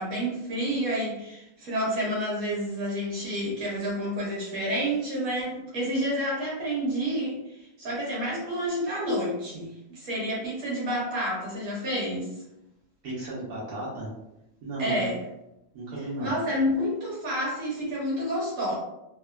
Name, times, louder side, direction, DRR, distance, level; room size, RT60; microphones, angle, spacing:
voice 1, 0.0-12.3 14.8-15.2 16.2-18.8, equal, 60° right, -5 dB, 1.4 m, -29 dB
voice 2, 13.0-14.1 14.6-15.0 15.7-16.4, right 1 dB, 85° right, -7 dB, 1.4 m, -34 dB
3.2 x 2.1 x 2.2 m, 0.88 s
omnidirectional pair, 1.6 m